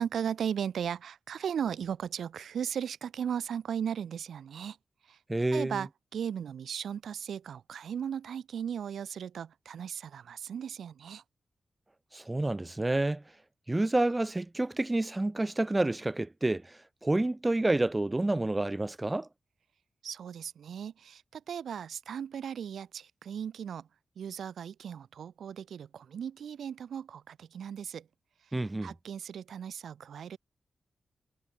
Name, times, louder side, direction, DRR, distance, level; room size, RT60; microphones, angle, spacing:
voice 1, 0.0-4.8 5.0-5.2 5.5-11.2 20.0-23.9 24.1-28.1 28.4-30.4, right 8 dB, 90° right, 3.0 m, -37 dB
voice 2, 5.3-5.8 12.1-13.2 13.7-16.6 17.0-19.3 28.5-28.9, right 2 dB, 20° right, 0.9 m, -28 dB
cardioid pair, 80°, 0 cm